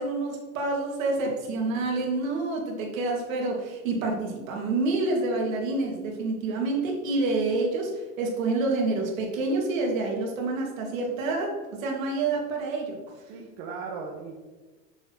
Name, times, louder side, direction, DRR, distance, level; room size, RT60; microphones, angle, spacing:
voice 1, 0.0-11.5 11.8-13.0, right 3 dB, 80° right, 0 dB, 2.5 m, -28 dB
voice 2, 1.2-1.8 13.3-14.3, right 4 dB, 50° right, -1 dB, 1.4 m, -39 dB
6.8 x 6.5 x 4.7 m, 1.2 s
supercardioid pair, 150°, 39 cm